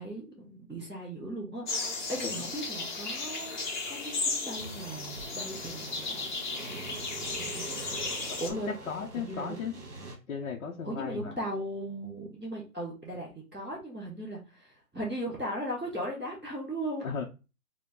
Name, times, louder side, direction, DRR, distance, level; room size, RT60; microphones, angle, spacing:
voice 1, 0.0-3.6 3.9-6.2 7.3-7.7 8.4-8.7 9.1-9.7 10.8-17.0, right 1 dB, ahead, -20 dB, 0.7 m, -37 dB
sound 1, 1.7-8.5, left 3 dB, 30° left, 0.9 m, -35 dB
sound 2, 4.6-10.2, right 2 dB, 45° right, 1.6 m, -44 dB
voice 2, 8.9-9.7 10.3-11.3 17.0-17.2, left 6 dB, 55° left, 1 dB, 0.8 m, -35 dB
4.5 x 2.3 x 3.7 m, 0.31 s
hypercardioid pair, 160°, 47 cm